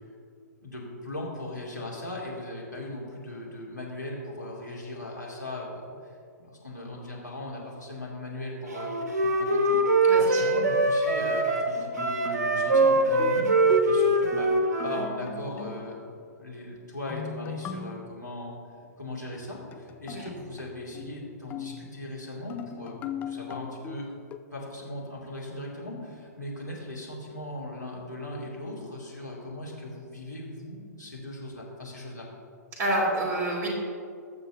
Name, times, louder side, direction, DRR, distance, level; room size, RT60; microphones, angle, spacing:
voice 1, 0.6-5.9 6.4-14.5 14.8-16.1 16.4-18.5 19.0-23.0 23.3-24.2 24.5-32.3, left 1 dB, 90° left, -5 dB, 2.4 m, -38 dB
Wind instrument woodwind instrument, 8.7-15.1, right 2 dB, 65° right, 1.1 m, -23 dB
voice 2, 10.1-10.5 20.1-20.3 32.7-33.7, right 1 dB, 20° right, -5 dB, 2.7 m, -28 dB
sound 1, 11.8-16.2 17.1-18.3 19.3-22.1 22.5-24.4, left 5 dB, 15° left, 0.3 m, -38 dB
18.5 x 6.9 x 2.7 m, 2.4 s
figure-of-eight pair, 110°, 9 cm